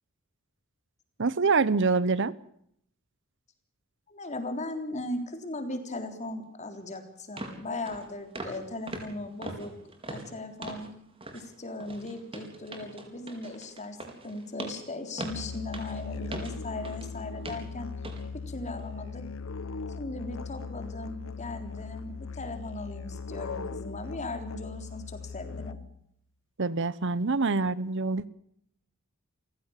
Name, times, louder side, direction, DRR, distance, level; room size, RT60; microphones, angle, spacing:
voice 1, 1.2-2.3 26.6-28.2, right 4 dB, 60° right, 18 dB, 0.9 m, -25 dB
voice 2, 4.1-9.7 10.1-10.9 11.3-14.0 14.2-17.9 18.5-19.2 20.0-25.8, left 2 dB, 35° left, 6 dB, 3.7 m, -38 dB
sound 1, 6.7-6.8 7.4-7.6 7.9-8.1 8.3-8.6 8.9-10.9 11.2-11.5 11.8-17.1 17.4-17.7 18.0-18.2 18.7-18.8, right 2 dB, 25° right, 4.5 m, -41 dB
Musical instrument, 15.3-26.1, left 4 dB, 70° left, 0.8 m, -39 dB
28.5 x 16.0 x 7.4 m, 0.71 s
head